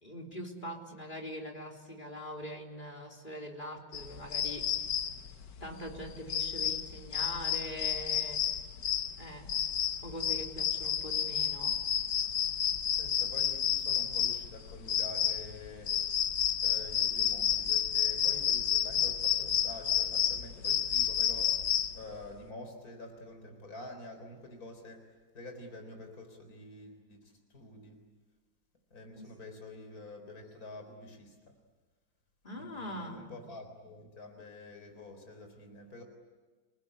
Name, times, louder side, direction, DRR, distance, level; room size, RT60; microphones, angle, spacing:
voice 1, 0.0-4.7 5.6-8.5 9.2-9.5 10.0-11.8 29.2-29.3 32.4-33.4, equal, 25° left, 1 dB, 3.8 m, -43 dB
sound 1, 3.9-22.2, left 9 dB, 65° left, 1.7 m, -31 dB
voice 2, 13.0-16.0 16.6-21.6 21.9-28.0 28.9-31.5 32.6-36.0, left 2 dB, 50° left, 5 dB, 4.5 m, -48 dB
29.0 x 19.5 x 9.9 m, 1.3 s
omnidirectional pair, 2.1 m